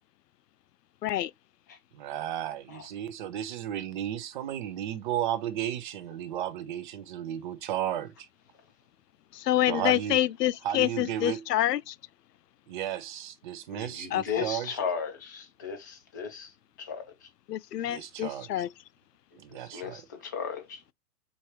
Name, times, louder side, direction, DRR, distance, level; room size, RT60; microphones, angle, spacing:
voice 1, 1.9-8.3 9.7-10.2 10.6-11.5 12.7-14.7 17.8-18.7 19.4-20.0, right 11 dB, 30° right, 0.6 m, -34 dB
voice 2, 9.3-11.9 14.1-14.2 17.5-18.7, left 13 dB, 85° left, 0.6 m, -27 dB
voice 3, 13.7-17.3 19.3-20.8, left 7 dB, 15° left, 0.3 m, -36 dB
4.5 x 2.6 x 3.2 m
hypercardioid pair, 135°, 47 cm